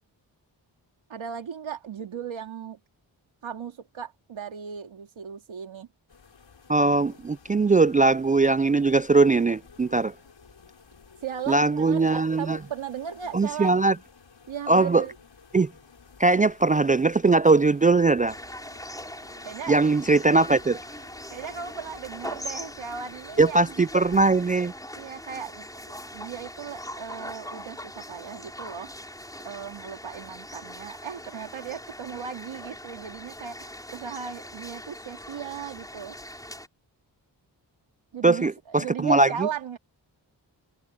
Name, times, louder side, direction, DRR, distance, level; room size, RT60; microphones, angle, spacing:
voice 1, 1.1-2.8 3.4-5.9 11.2-13.8 14.5-15.1 19.4-19.8 21.3-23.9 24.9-28.9 29.4-36.1 38.1-39.8, right 7 dB, 85° right, 2.6 m, -37 dB
sound 1, 6.1-24.7, left 5 dB, 70° left, 6.7 m, -52 dB
voice 2, 6.7-10.1 11.5-12.6 13.3-14.0 14.7-15.1 15.5-15.7 16.2-18.3 19.7-20.8 23.4-24.7 38.2-39.5, right 3 dB, 20° right, 0.4 m, -20 dB
sound 2, 18.3-36.7, left 1 dB, 10° left, 5.1 m, -41 dB
cardioid pair, 45°, 46 cm